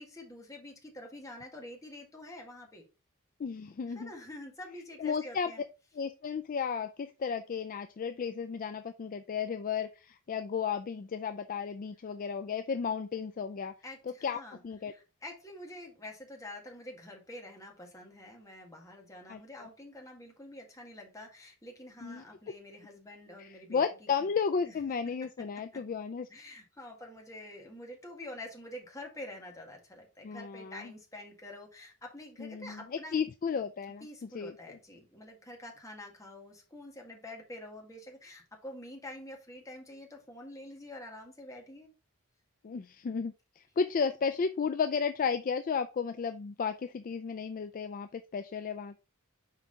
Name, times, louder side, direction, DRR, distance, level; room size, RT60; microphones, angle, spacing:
voice 1, 0.0-2.8 3.9-5.6 13.8-14.6 14.9-24.4 24.6-24.7 26.3-33.2 34.0-41.9, left 1 dB, 15° left, 1 dB, 1.7 m, -47 dB
voice 2, 3.4-4.1 5.0-5.5 6.0-13.7 14.2-14.9 19.3-19.4 22.0-22.5 23.4-26.3 30.2-30.9 32.4-32.8 33.1-34.5 42.6-49.0, left 6 dB, 40° left, 9 dB, 0.3 m, -33 dB
5.7 x 4.8 x 3.9 m, 0.31 s
head